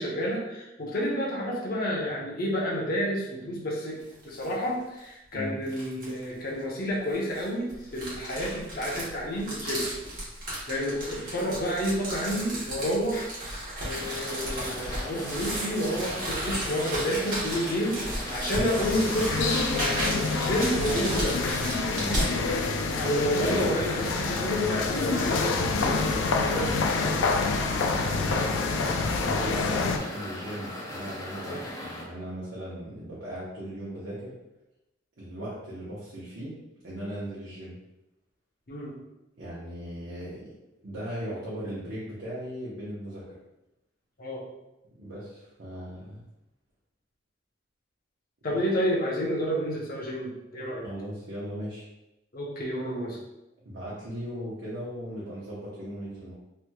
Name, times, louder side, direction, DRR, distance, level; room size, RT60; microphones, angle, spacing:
voice 1, 0.0-4.0 4.2-9.9 10.5-21.4 23.0-26.0 26.5-27.4 31.4-31.6 38.7-38.9 44.2-44.4 48.4-50.8 52.3-53.2, equal, 50° left, -3 dB, 0.8 m, -30 dB
sound 1, 4.0-4.5 5.0-5.1 5.7-6.2 7.1-22.3, right 1 dB, 45° right, 1.2 m, -34 dB
sound 2, 13.9-32.0, left 1 dB, 20° left, 0.5 m, -39 dB
sound 3, 18.7-30.0, left 4 dB, 85° left, 0.4 m, -27 dB
voice 2, 27.8-34.3 35.2-36.6 36.8-37.8 39.4-40.5 40.8-43.2 45.0-46.2 48.5-48.6 50.8-51.9 53.6-56.3, equal, 70° right, -8 dB, 0.8 m, -38 dB
3.2 x 3.0 x 2.2 m, 0.94 s
head